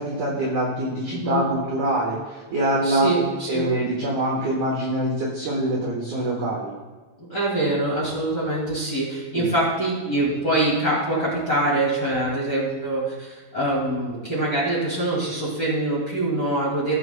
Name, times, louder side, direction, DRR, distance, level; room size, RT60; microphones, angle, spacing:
voice 1, 0.0-3.1 3.5-6.7 9.3-9.5, right 1 dB, 80° right, -3 dB, 1.7 m, -24 dB
voice 2, 1.1-1.4 2.8-3.7 7.2-17.0, right 2 dB, 30° left, -6 dB, 2.1 m, -24 dB
16.0 x 7.8 x 2.3 m, 1.3 s
omnidirectional pair, 5.2 m